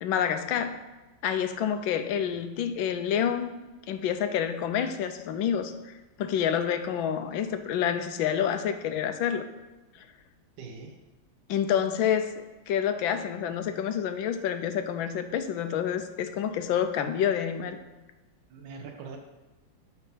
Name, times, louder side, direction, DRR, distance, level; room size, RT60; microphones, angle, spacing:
voice 1, 0.0-0.8 1.2-3.5 3.9-9.5 11.5-17.8, left 8 dB, 75° left, 8 dB, 1.4 m, -28 dB
voice 2, 10.6-11.0 16.7-17.1 18.5-19.2, right 5 dB, 70° right, 2 dB, 1.5 m, -43 dB
9.6 x 4.5 x 5.6 m, 1.1 s
omnidirectional pair, 2.2 m